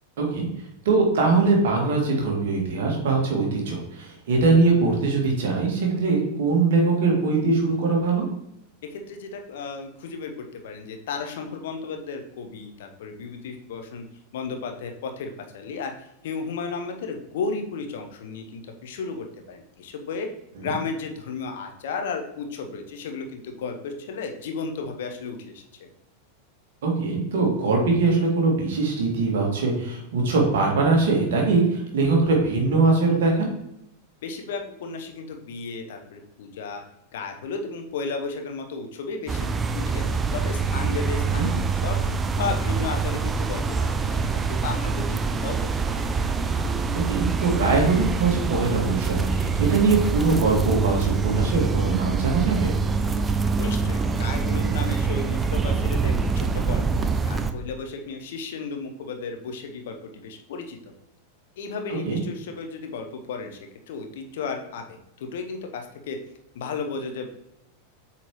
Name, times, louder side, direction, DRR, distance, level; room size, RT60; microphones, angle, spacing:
voice 1, 0.2-0.5 0.9-8.3 20.6-20.7 26.8-33.5 41.2-41.5 47.1-52.8 62.1-62.2, right 3 dB, 55° right, -1 dB, 2.0 m, -22 dB
voice 2, 8.8-14.0 14.3-20.3 20.6-25.9 34.2-36.8 37.1-42.0 42.3-46.0 53.6-60.8 61.6-63.6 63.9-66.2 66.5-67.3, left 4 dB, 55° left, 4 dB, 0.9 m, -34 dB
sound 1, 39.3-57.5, right 4 dB, 15° right, 0.5 m, -25 dB
7.8 x 4.3 x 3.1 m, 0.82 s
figure-of-eight pair, 90°, 0 cm